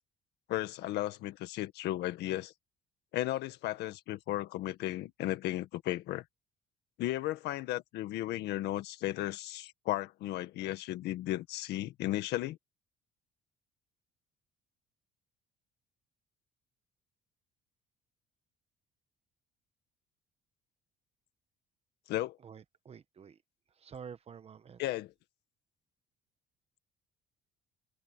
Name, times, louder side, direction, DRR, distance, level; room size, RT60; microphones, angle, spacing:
voice 1, 0.5-2.5 3.1-6.2 7.0-12.6 22.1-22.4 24.8-25.1, left 15 dB, 80° left, 1.7 m, -35 dB
voice 2, 22.4-23.3 23.8-24.8, right 7 dB, 35° right, 1.2 m, -49 dB
open air
cardioid pair, 110°, 17 cm